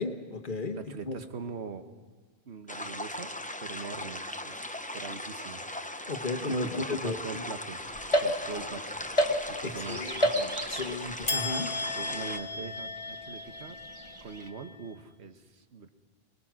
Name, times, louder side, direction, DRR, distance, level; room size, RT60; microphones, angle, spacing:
voice 1, 0.0-0.8 1.1-1.2 6.1-7.4 8.5-8.7 9.6-11.7, left 3 dB, 50° left, 6 dB, 1.4 m, -34 dB
voice 2, 0.7-1.8 2.5-3.3 3.6-4.6 4.9-5.6 6.4-7.8 8.2-8.9 9.5-10.1 12.0-13.8 14.2-15.9, right 5 dB, 85° right, 8 dB, 1.4 m, -42 dB
sound 1, 2.7-12.4, left 1 dB, 10° left, 0.7 m, -39 dB
sound 2, 7.8-14.5, right 3 dB, 30° right, 0.9 m, -46 dB
sound 3, 8.1-8.8 9.2-9.8 10.2-10.9 11.3-14.7, equal, 30° left, 1.5 m, -31 dB
25.0 x 20.5 x 6.1 m, 1.4 s
omnidirectional pair, 1.1 m